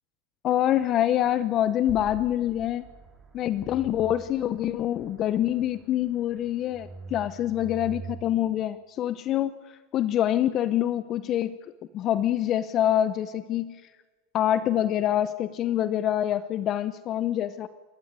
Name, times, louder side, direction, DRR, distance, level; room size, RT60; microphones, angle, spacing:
voice 1, 0.4-2.8 3.3-11.6 11.9-13.8 14.3-17.7, left 11 dB, 40° left, 15 dB, 0.7 m, -26 dB
sound 1, 1.2-8.1, right 4 dB, 15° right, 5.0 m, -45 dB
28.0 x 15.0 x 9.5 m, 1.4 s
supercardioid pair, 130°, 0 cm